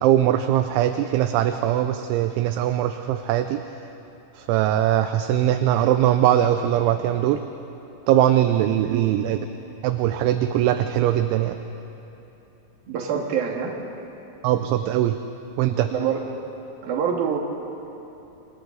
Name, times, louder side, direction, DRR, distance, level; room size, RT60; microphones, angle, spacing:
voice 1, 0.0-3.6 4.4-7.4 8.1-9.5 9.8-11.6 14.4-15.2 15.6-15.9, right 12 dB, 80° right, 8 dB, 2.9 m, -21 dB
voice 2, 12.9-13.7 15.9-16.2 16.8-17.4, right 7 dB, 55° right, 0 dB, 3.3 m, -25 dB
29.0 x 27.0 x 4.0 m, 3.0 s
omnidirectional pair, 5.7 m